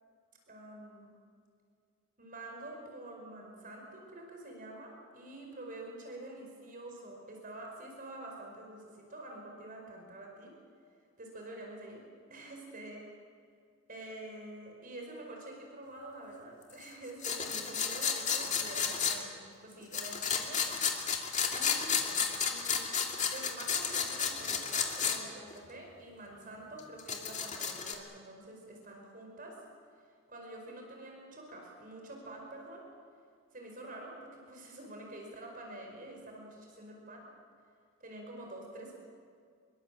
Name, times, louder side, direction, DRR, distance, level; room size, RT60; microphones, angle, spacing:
voice 1, 0.5-1.1 2.2-10.6 11.2-12.0 12.3-13.1 13.9-20.6 21.5-22.0 22.5-22.9 23.2-29.6 30.3-32.9 33.5-37.2 38.0-39.0, right 1 dB, 40° right, 1 dB, 5.1 m, -47 dB
sound 1, 17.2-19.2 19.9-25.2 25.5-25.6 26.8-27.9, left 6 dB, 35° left, 2.6 m, -32 dB
26.0 x 22.5 x 7.6 m, 2.2 s
head